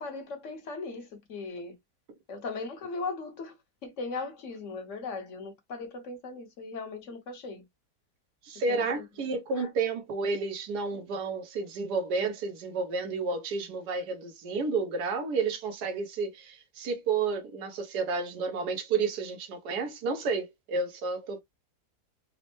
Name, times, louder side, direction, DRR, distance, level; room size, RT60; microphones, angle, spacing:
voice 1, 0.0-1.7 2.3-3.5 3.8-7.6 8.7-9.0 9.6-9.7, left 3 dB, 50° left, 1.2 m, -38 dB
voice 2, 8.4-21.4, right 4 dB, 80° right, 1.4 m, -31 dB
4.2 x 2.1 x 2.9 m
omnidirectional pair, 1.8 m